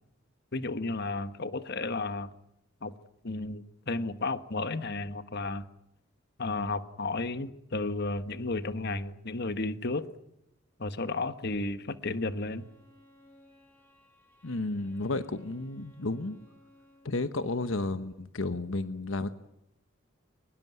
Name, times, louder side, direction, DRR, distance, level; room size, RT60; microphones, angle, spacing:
voice 1, 0.5-2.3 2.8-2.9 3.2-5.7 6.4-10.1 10.8-12.6, left 3 dB, 55° left, 12 dB, 1.3 m, -33 dB
Bowed string instrument, 11.8-17.2, left 1 dB, 10° left, 6.5 m, -61 dB
voice 2, 14.4-16.4 17.0-19.3, left 2 dB, 70° left, 11 dB, 1.1 m, -32 dB
23.0 x 20.5 x 9.3 m, 0.83 s
head